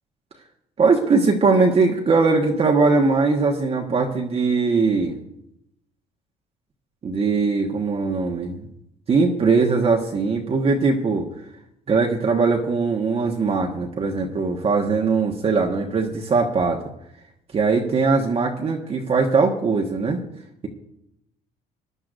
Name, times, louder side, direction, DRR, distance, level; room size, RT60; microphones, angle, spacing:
voice 1, 0.8-5.2 7.0-8.7 9.1-11.3 11.9-16.8 17.5-20.2, right 4 dB, 35° right, 0 dB, 1.4 m, -20 dB
21.5 x 10.5 x 2.6 m, 0.80 s
cardioid pair, 110°, 17 cm